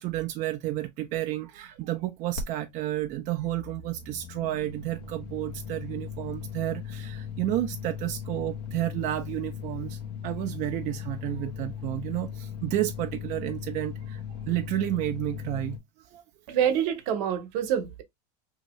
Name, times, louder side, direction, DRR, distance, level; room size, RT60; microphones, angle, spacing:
voice 1, 0.0-16.2, right 14 dB, 35° right, 0.4 m, -31 dB
sound 1, 2.4-15.8, left 7 dB, 80° left, 0.9 m, -38 dB
voice 2, 16.5-18.0, right 9 dB, 60° right, 0.9 m, -26 dB
2.7 x 2.7 x 3.0 m
supercardioid pair, 125°, 21 cm